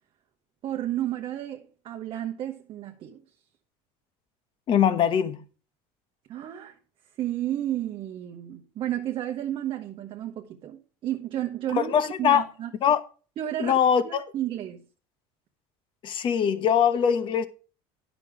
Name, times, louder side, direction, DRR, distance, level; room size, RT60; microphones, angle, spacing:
voice 1, 0.6-3.2 6.3-6.8 7.2-12.7 13.4-14.8, right 12 dB, 45° right, 1.0 m, -32 dB
voice 2, 4.7-5.4 11.8-12.4 12.8-13.0 13.6-14.2 16.0-17.5, left 8 dB, 40° left, 1.1 m, -22 dB
10.5 x 6.1 x 4.9 m
cardioid pair, 140°, 13 cm